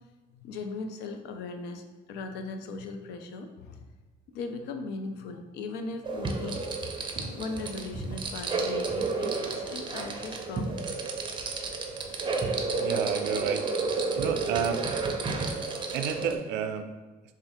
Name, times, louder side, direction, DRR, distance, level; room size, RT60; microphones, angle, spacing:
voice 1, 0.3-3.9 4.3-6.6 7.2-11.1, left 3 dB, 85° left, 6 dB, 0.5 m, -38 dB
sound 1, 6.0-16.4, right 3 dB, 30° right, 0.5 m, -31 dB
voice 2, 12.8-13.7 14.2-14.8 15.9-16.9, right 7 dB, 90° right, 8 dB, 0.4 m, -30 dB
3.4 x 2.4 x 4.2 m, 1.2 s
cardioid pair, 110°, 17 cm